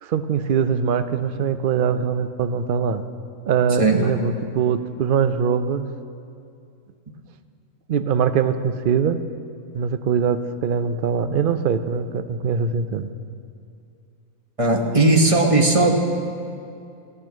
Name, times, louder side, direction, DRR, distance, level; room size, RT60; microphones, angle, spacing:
voice 1, 0.0-3.0 3.5-5.9 7.9-9.2 9.7-13.1, right 6 dB, 55° right, 10 dB, 0.6 m, -22 dB
voice 2, 14.6-15.9, right 2 dB, 25° right, 2 dB, 1.3 m, -17 dB
15.0 x 9.2 x 7.4 m, 2.4 s
omnidirectional pair, 1.5 m